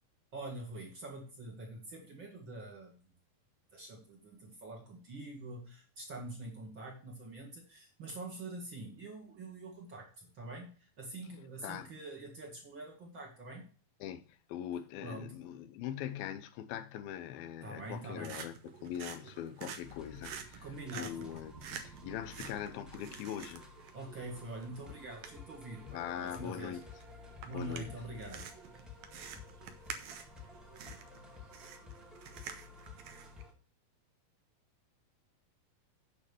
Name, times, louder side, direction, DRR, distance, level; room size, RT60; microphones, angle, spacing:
voice 1, 0.3-3.1 3.7-13.7 15.0-15.3 17.6-18.3 20.6-21.3 23.9-26.8 27.4-28.5, right 2 dB, 40° right, 2.0 m, -45 dB
voice 2, 14.0-20.7 20.9-23.7 25.9-26.8 27.5-27.9, left 10 dB, 90° left, 2.6 m, -42 dB
sound 1, 17.8-33.4, right 7 dB, 70° right, 1.7 m, -49 dB
sound 2, 19.8-33.5, left 5 dB, ahead, 0.7 m, -53 dB
8.7 x 5.4 x 6.8 m
omnidirectional pair, 4.2 m